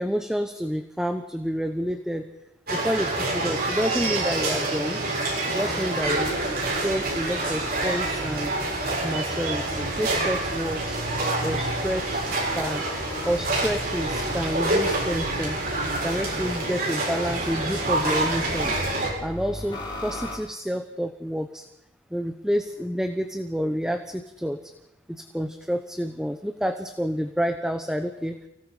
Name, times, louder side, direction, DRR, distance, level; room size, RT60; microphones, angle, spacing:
voice 1, 0.0-2.2 2.7-5.0 5.5-6.3 6.6-8.5 9.0-11.0 11.4-12.8 13.2-15.6 16.0-18.8 19.2-21.6 22.1-24.6 25.1-28.3, equal, 5° right, 7 dB, 0.9 m, -29 dB
sound 1, 2.7-19.1, right 2 dB, 55° right, 7.2 m, -27 dB
sound 2, 6.0-9.1 9.6-16.7 17.2-20.4, left 1 dB, 25° left, 5.5 m, -39 dB
29.5 x 17.5 x 5.0 m, 0.87 s
head